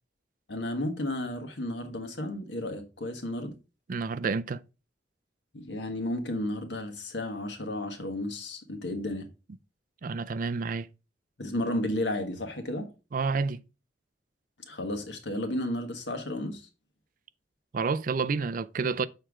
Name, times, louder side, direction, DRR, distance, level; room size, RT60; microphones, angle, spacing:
voice 1, 0.5-3.6 5.5-9.3 11.4-12.9 14.7-16.6, left 1 dB, 85° left, 1.6 m, -33 dB
voice 2, 3.9-4.6 10.0-10.9 13.1-13.6 17.7-19.1, right 4 dB, 50° right, 0.5 m, -29 dB
6.8 x 4.5 x 4.8 m
head